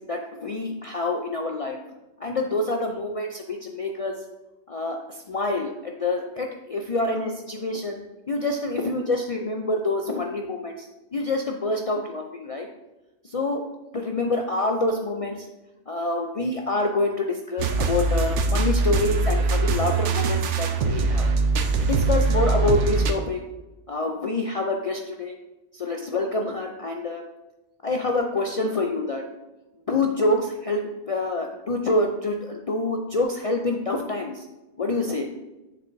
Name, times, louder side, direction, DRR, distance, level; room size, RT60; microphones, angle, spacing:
voice 1, 0.1-1.8 2.2-4.2 4.7-8.0 8.3-12.7 13.2-13.6 13.9-15.5 15.9-21.3 21.8-23.4 23.9-25.4 25.7-27.2 27.8-29.2 29.9-34.5 34.8-35.3, left 2 dB, 60° left, 2 dB, 0.3 m, -26 dB
sound 1, 17.6-23.1, right 3 dB, 80° right, 1.0 m, -22 dB
7.5 x 6.7 x 2.6 m, 1.0 s
omnidirectional pair, 1.2 m